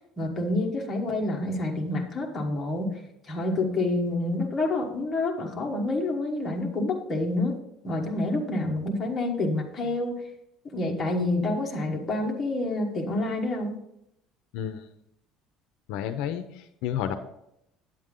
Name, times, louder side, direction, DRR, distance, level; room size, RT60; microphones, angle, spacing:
voice 1, 0.2-3.0 3.3-7.6 7.8-10.2 10.7-13.7, left 2 dB, 15° left, -1 dB, 1.3 m, -28 dB
voice 2, 14.5-14.8 15.9-17.1, left 9 dB, 65° left, 9 dB, 0.6 m, -31 dB
8.8 x 7.9 x 3.7 m, 0.78 s
cardioid pair, 180°, 0 cm